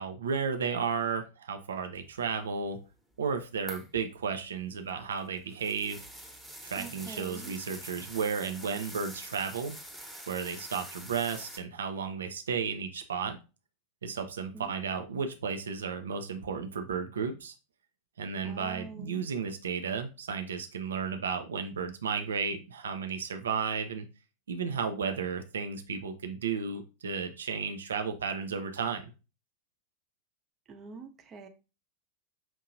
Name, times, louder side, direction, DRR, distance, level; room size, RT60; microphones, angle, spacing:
voice 1, 0.0-2.8 3.2-6.0 6.6-9.8 10.3-13.4 14.0-17.5 18.2-24.1 24.5-29.1, right 6 dB, 65° right, 0.5 m, -33 dB
sound 1, 3.7-4.0 4.9-11.6, right 1 dB, 5° right, 1.0 m, -46 dB
voice 2, 6.8-7.5 14.5-14.7 18.4-19.3 30.7-31.5, right 3 dB, 25° right, 0.8 m, -45 dB
5.9 x 2.7 x 2.5 m
figure-of-eight pair, 90°, 0 cm